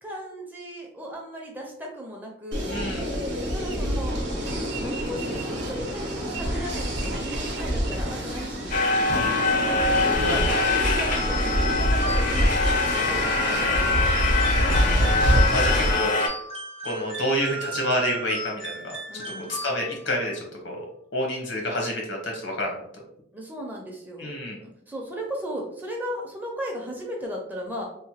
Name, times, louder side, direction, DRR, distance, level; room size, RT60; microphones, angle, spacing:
voice 1, 0.0-2.8 3.4-4.2 4.8-14.9 19.1-19.6 23.3-24.4 24.6-27.8, equal, 10° right, -1 dB, 0.5 m, -36 dB
sound 1, 2.5-16.0, equal, 70° right, 0.7 m, -26 dB
voice 2, 2.7-3.1 10.2-10.4 14.8-16.2 16.8-19.2 19.5-20.9 21.1-22.7 24.2-24.6, left 1 dB, 85° left, 1 dB, 0.9 m, -29 dB
sound 2, 8.7-16.3, left 3 dB, 45° left, 0.4 m, -24 dB
sound 3, 11.1-20.1, right 2 dB, 30° right, 0.8 m, -36 dB
2.9 x 2.1 x 2.8 m, 0.71 s
head